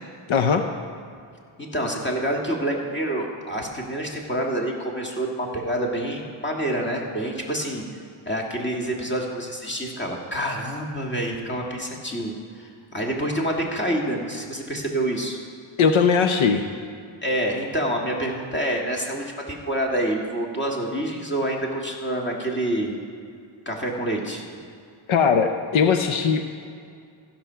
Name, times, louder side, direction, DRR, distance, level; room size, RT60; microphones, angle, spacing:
voice 1, 0.3-0.6 15.8-16.6 25.1-26.5, left 6 dB, 70° left, 6 dB, 0.8 m, -19 dB
voice 2, 1.6-7.8 8.3-15.4 17.2-22.9 23.7-24.4, right 1 dB, 20° left, -1 dB, 1.9 m, -27 dB
15.5 x 6.0 x 5.6 m, 2.4 s
cardioid pair, 100°, 50 cm